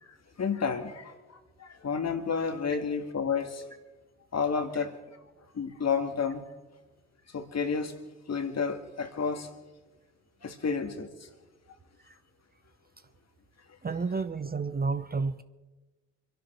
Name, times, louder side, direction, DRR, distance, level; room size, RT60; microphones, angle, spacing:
voice 1, 0.0-3.7 4.3-5.0 5.5-6.5 7.3-8.0 8.3-9.5 10.4-11.3, left 5 dB, 45° left, 8 dB, 2.0 m, -31 dB
voice 2, 13.8-15.4, right 4 dB, 25° right, 11 dB, 0.7 m, -31 dB
25.5 x 11.5 x 4.5 m, 1.2 s
hypercardioid pair, 40°, 37 cm